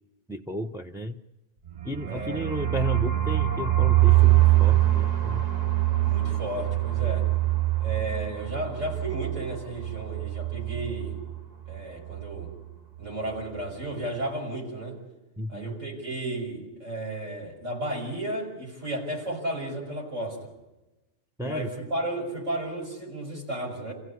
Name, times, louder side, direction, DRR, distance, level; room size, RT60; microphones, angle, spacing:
voice 1, 0.3-1.2 1.8-5.5 15.4-15.7 21.4-21.7, equal, 5° right, 2 dB, 0.5 m, -33 dB
sound 1, 1.7-11.4 11.7-11.8 12.1-12.5, right 16 dB, 35° right, 1.0 m, -24 dB
voice 2, 2.1-2.4 6.0-7.3 7.8-11.2 11.7-12.5 13.0-15.0 15.5-20.4 21.4-23.9, right 1 dB, 85° right, -1 dB, 6.3 m, -33 dB
28.5 x 16.0 x 9.7 m, 1.0 s
omnidirectional pair, 1.3 m